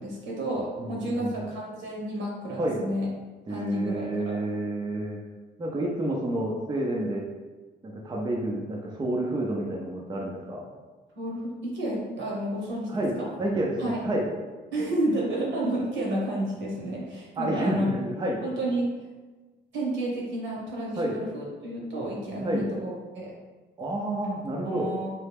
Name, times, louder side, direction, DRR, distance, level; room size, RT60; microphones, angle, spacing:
voice 1, 0.0-3.1 3.5-4.3 11.2-12.9 13.2-13.3 13.8-14.0 14.7-17.9 18.4-18.9 19.7-23.3 24.6-25.1, right 1 dB, 70° right, -3 dB, 1.1 m, -31 dB
voice 2, 0.8-1.5 2.6-2.8 3.5-5.2 5.6-7.2 7.8-10.7 12.9-13.1 13.4-14.3 17.4-18.4 21.0-21.2 22.4-22.7 23.8-24.9, right 1 dB, 20° right, -2 dB, 0.5 m, -29 dB
3.1 x 2.3 x 3.3 m, 1.3 s
cardioid pair, 90°, 20 cm